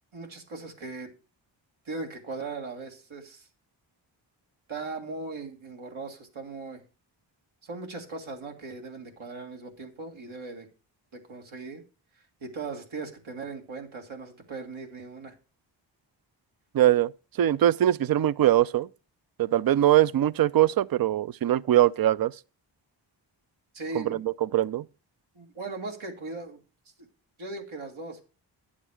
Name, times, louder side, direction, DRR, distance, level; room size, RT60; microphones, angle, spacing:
voice 1, 0.1-1.1 1.9-3.5 4.7-6.8 7.6-10.7 11.1-11.8 12.4-15.3 23.7-24.2 25.4-26.6 27.4-28.2, right 3 dB, 90° right, 2.0 m, -38 dB
voice 2, 16.7-17.1 17.4-18.9 19.4-22.3 23.9-24.9, right 12 dB, 50° right, 0.5 m, -22 dB
10.0 x 7.4 x 4.8 m
cardioid pair, 50°, 47 cm